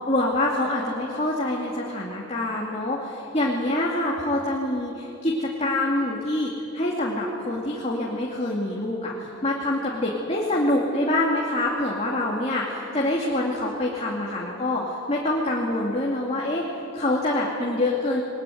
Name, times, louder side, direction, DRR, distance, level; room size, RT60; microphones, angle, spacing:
voice 1, 0.1-16.6 16.9-18.2, left 1 dB, 30° left, -3 dB, 2.5 m, -25 dB
22.0 x 21.5 x 9.3 m, 2.9 s
head